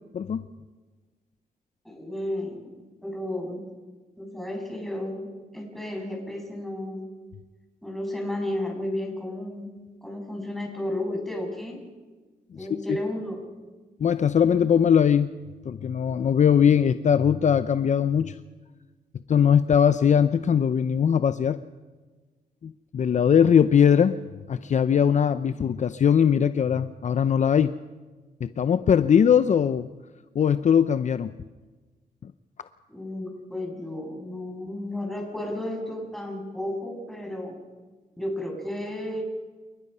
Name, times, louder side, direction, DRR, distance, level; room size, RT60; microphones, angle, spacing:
voice 1, 0.1-0.5 12.5-13.0 14.0-15.3 15.6-18.4 19.3-21.6 22.6-24.2 24.5-27.8 28.4-29.9 30.3-31.3 32.2-32.3, left 8 dB, 50° left, 12 dB, 0.6 m, -21 dB
voice 2, 1.8-3.6 4.2-7.1 7.8-9.7 10.0-11.8 12.5-13.4 32.9-37.6 38.2-39.2, left 1 dB, ahead, 0 dB, 6.9 m, -33 dB
29.0 x 19.5 x 5.6 m, 1.3 s
cardioid pair, 110°, 16 cm